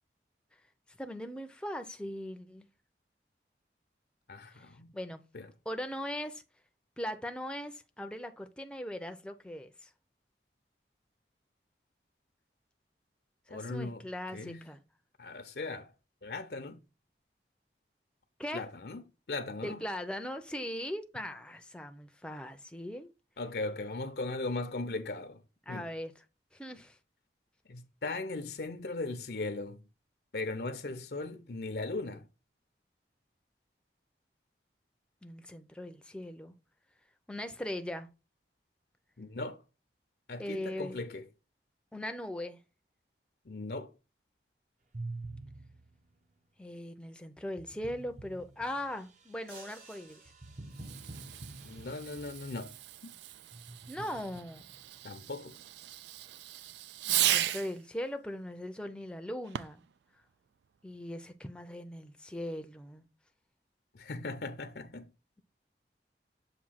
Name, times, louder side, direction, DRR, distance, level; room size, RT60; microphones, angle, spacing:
voice 1, 0.9-2.7 4.5-5.2 5.7-6.4 7.0-9.9 13.5-14.8 18.4-18.7 19.6-23.1 25.7-26.2 26.5-27.0 35.2-36.5 37.3-38.1 40.4-41.0 41.9-42.6 46.6-50.2 53.9-54.6 57.1-59.8 60.8-63.1, left 1 dB, 5° left, 0.6 m, -39 dB
voice 2, 4.3-4.9 5.3-5.5 13.5-14.0 14.3-14.6 15.2-15.9 16.2-16.8 18.5-19.8 23.4-25.4 25.7-25.9 27.7-29.9 30.3-32.2 39.2-39.6 40.3-41.3 43.5-43.9 51.6-53.2 55.0-55.6 63.9-65.1, left 2 dB, 65° left, 0.7 m, -38 dB
sound 1, 44.9-46.1 47.4-52.7 53.5-54.8, right 2 dB, 45° right, 0.7 m, -47 dB
sound 2, 49.5-51.3, right 3 dB, 60° right, 3.5 m, -55 dB
Fireworks, 50.7-57.8 59.4-59.9, right 13 dB, 80° right, 0.3 m, -36 dB
7.3 x 2.7 x 5.6 m
head